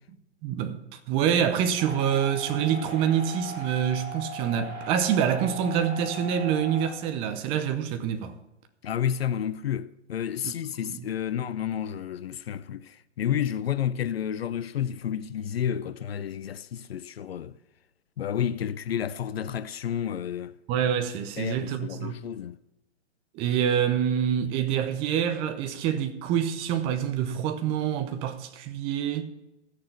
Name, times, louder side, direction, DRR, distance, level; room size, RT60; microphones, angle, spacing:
voice 1, 0.4-0.8 1.1-8.3 10.4-10.5 10.8-11.0 20.7-22.2 23.3-29.2, right 9 dB, 15° right, 0.6 m, -26 dB
sound 1, 1.8-6.9, right 2 dB, 65° right, 3.4 m, -38 dB
voice 2, 8.8-17.5 18.2-20.6 21.4-22.6, left 9 dB, 55° left, 0.6 m, -30 dB
15.0 x 6.7 x 5.7 m
figure-of-eight pair, 130°, 36 cm